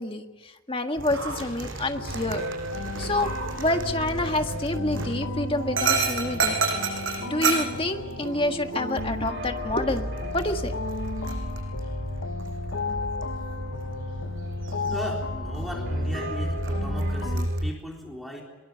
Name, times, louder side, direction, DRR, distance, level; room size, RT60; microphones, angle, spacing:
voice 1, 0.0-2.4 3.0-3.3 3.6-6.6 7.3-10.7, left 1 dB, 25° left, 5 dB, 1.7 m, -28 dB
sound 1, 1.0-17.7, equal, 55° right, 2.0 m, -33 dB
Dog, 1.0-17.6, right 4 dB, 70° right, 5.9 m, -34 dB
sound 2, 1.9-17.5, left 4 dB, 70° left, 0.7 m, -36 dB
voice 2, 14.9-18.4, equal, ahead, -1 dB, 3.8 m, -37 dB
22.5 x 22.0 x 7.0 m, 1.3 s
head